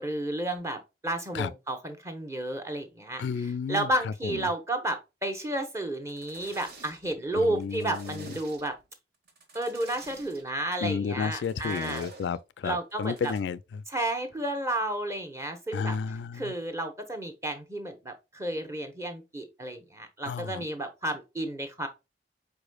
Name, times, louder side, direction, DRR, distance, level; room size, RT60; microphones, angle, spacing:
voice 1, 0.0-3.2 3.7-8.7 9.5-12.0 12.6-13.3 13.9-16.0 16.3-21.9, right 1 dB, 15° right, 0.9 m, -32 dB
voice 2, 3.2-4.5 7.3-8.3 10.8-13.8 15.7-16.5 20.3-20.6, left 6 dB, 80° left, 0.3 m, -32 dB
sound 1, 5.9-7.2 7.5-8.9 9.3-10.4 11.2-12.4 12.9-13.4, right 2 dB, 60° right, 1.3 m, -48 dB
4.9 x 4.6 x 2.3 m
head